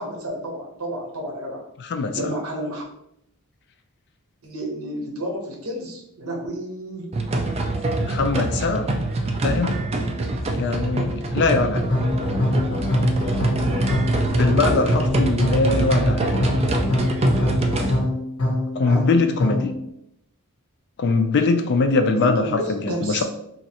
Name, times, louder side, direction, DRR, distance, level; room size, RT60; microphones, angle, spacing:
voice 1, 0.0-1.6 2.0-2.8 4.4-7.1 14.0-14.9 18.8-19.1 22.1-23.2, right 1 dB, 70° right, 0 dB, 0.9 m, -31 dB
sound 1, 7.1-18.0, right 2 dB, 30° right, 0.3 m, -24 dB
voice 2, 8.0-8.9 9.4-9.8 10.6-11.8 14.3-16.4 18.8-19.7 21.0-23.2, left 3 dB, 50° left, 7 dB, 0.4 m, -22 dB
sound 2, 11.9-19.8, left 1 dB, 80° left, 0.9 m, -24 dB
3.0 x 2.6 x 2.8 m, 0.77 s
head